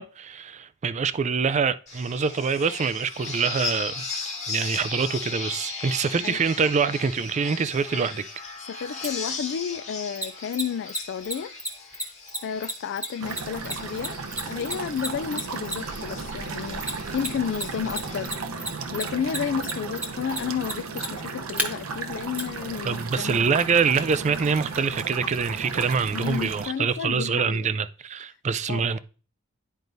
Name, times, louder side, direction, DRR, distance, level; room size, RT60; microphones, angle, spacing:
voice 1, 0.0-4.0 4.5-8.2 22.8-29.0, right 5 dB, 35° right, 0.4 m, -25 dB
sound 1, 1.9-18.3, left 4 dB, 35° left, 1.5 m, -37 dB
voice 2, 8.7-11.5 12.4-14.2 14.5-18.3 18.9-23.5 26.1-27.7 28.7-28.9, left 7 dB, 55° left, 0.3 m, -32 dB
Mechanisms, 9.0-9.1 10.2-16.0 16.8-17.6 17.9-21.7 22.4-22.5, right 1 dB, 5° right, 1.1 m, -30 dB
sound 2, 13.2-26.7, right 4 dB, 75° right, 0.8 m, -35 dB
10.5 x 4.6 x 2.6 m
head